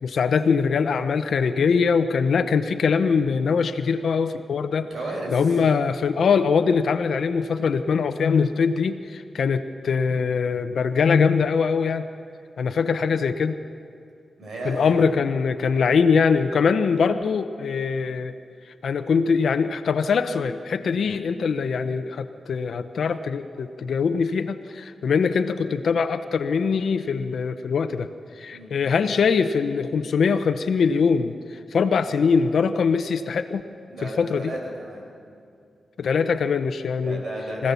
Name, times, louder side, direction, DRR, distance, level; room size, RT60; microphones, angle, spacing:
voice 1, 0.0-4.9 5.3-12.0 12.6-13.6 14.6-18.3 18.8-28.1 28.4-33.6 34.0-34.5 36.0-37.2 37.6-37.7, left 5 dB, 75° left, 9 dB, 0.8 m, -22 dB
voice 2, 4.9-5.5 14.4-15.0 20.9-21.1 28.5-28.7 33.9-35.1 37.0-37.7, right 2 dB, 70° right, -1 dB, 6.5 m, -34 dB
25.0 x 16.0 x 7.0 m, 2.5 s
cardioid pair, 90°, 0 cm